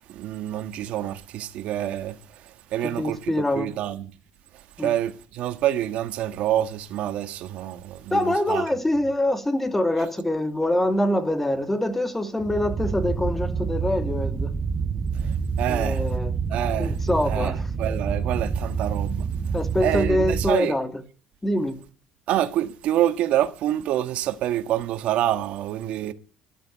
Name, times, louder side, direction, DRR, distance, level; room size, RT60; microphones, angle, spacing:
voice 1, 0.1-4.1 4.5-8.6 15.2-16.0 16.5-17.0 17.3-19.3 19.8-20.7 22.3-26.1, right 12 dB, 65° right, 1.6 m, -27 dB
voice 2, 3.0-3.7 4.8-4.9 8.1-14.5 15.7-16.3 16.8-17.6 19.5-20.9 21.4-21.8, left 1 dB, 10° left, 2.4 m, -24 dB
sound 1, 12.4-20.5, right 5 dB, 25° right, 1.1 m, -27 dB
13.5 x 12.5 x 8.1 m
cardioid pair, 105°, 2 cm